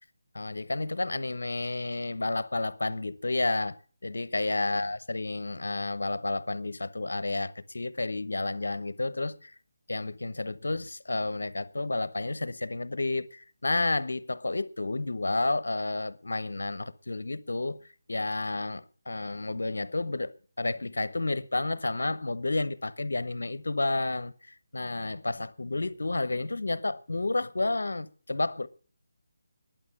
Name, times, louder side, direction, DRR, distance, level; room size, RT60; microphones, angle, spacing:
voice 1, 0.3-3.8 4.0-9.5 9.9-17.8 18.1-24.3 24.7-28.7, left 2 dB, 80° left, 1.0 m, -31 dB
11.0 x 9.1 x 8.7 m
figure-of-eight pair, 160°, 0 cm